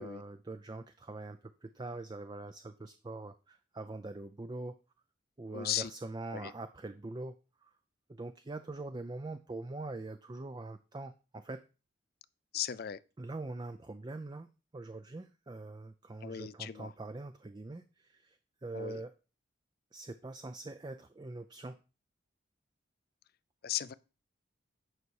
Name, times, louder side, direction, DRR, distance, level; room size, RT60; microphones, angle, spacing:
voice 1, 0.0-4.8 5.4-7.3 7.6-7.7 8.1-11.6 13.2-14.5 14.7-19.1 19.9-21.8, right 2 dB, 20° right, 0.4 m, -43 dB
voice 2, 5.5-5.9 6.3-6.5 12.5-13.0 16.2-16.9 18.7-19.0 23.6-23.9, left 11 dB, 50° left, 0.4 m, -36 dB
9.5 x 5.6 x 4.7 m
head